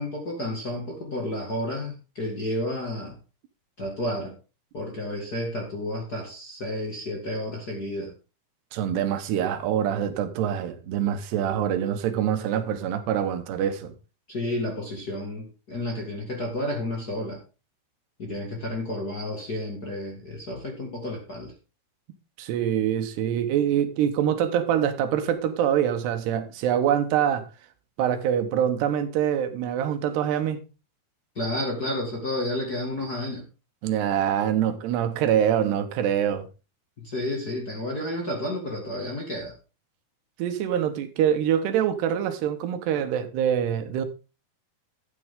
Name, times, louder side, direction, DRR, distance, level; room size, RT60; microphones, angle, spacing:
voice 1, 0.0-3.2 3.8-4.3 4.7-8.1 14.3-17.4 18.2-21.5 31.4-33.4 37.0-39.5, left 1 dB, 30° left, 1.9 m, -31 dB
voice 2, 8.7-13.9 22.4-27.5 28.0-30.6 33.8-36.5 40.4-44.1, right 9 dB, 85° right, 3.3 m, -25 dB
12.5 x 9.4 x 3.7 m
omnidirectional pair, 4.6 m